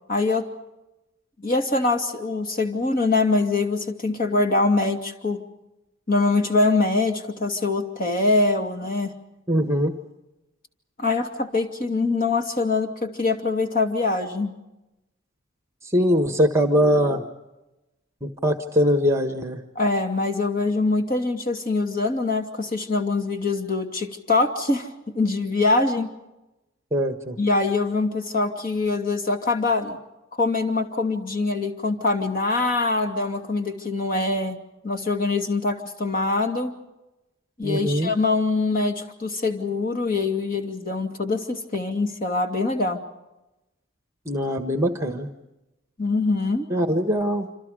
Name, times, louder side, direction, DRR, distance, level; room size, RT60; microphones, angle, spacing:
voice 1, 0.1-0.5 1.4-5.4 6.1-9.1 11.0-14.6 19.8-24.9 25.1-26.1 27.4-30.0 30.4-34.6 34.8-36.7 37.6-43.0 46.0-46.7, left 3 dB, 45° left, 4 dB, 2.5 m, -23 dB
voice 2, 9.5-9.9 15.9-17.3 18.2-19.6 26.9-27.4 37.6-38.1 44.3-45.3 46.7-47.5, equal, 15° right, 6 dB, 1.4 m, -22 dB
27.0 x 26.5 x 5.1 m, 0.98 s
head